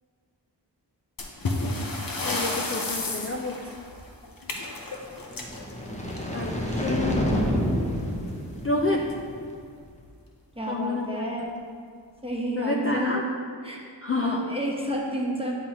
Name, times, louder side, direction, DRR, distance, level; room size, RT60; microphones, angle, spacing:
sound 1, 1.2-6.6 7.8-8.0 8.3-8.4 9.0-9.1 9.8-10.1, left 2 dB, 50° left, 0.8 m, -32 dB
voice 1, 2.2-3.7 6.3-7.3 8.6-9.2 10.7-11.3 12.5-13.2 14.0-14.5, left 2 dB, 35° left, 0 dB, 0.4 m, -28 dB
sound 2, 5.2-9.5, equal, 15° left, 0.8 m, -29 dB
voice 2, 10.6-11.5 12.2-13.2 13.6-13.8 14.1-15.5, equal, 15° right, -2 dB, 1.0 m, -30 dB
8.9 x 3.8 x 3.0 m, 2.1 s
wide cardioid pair, 50°, 44 cm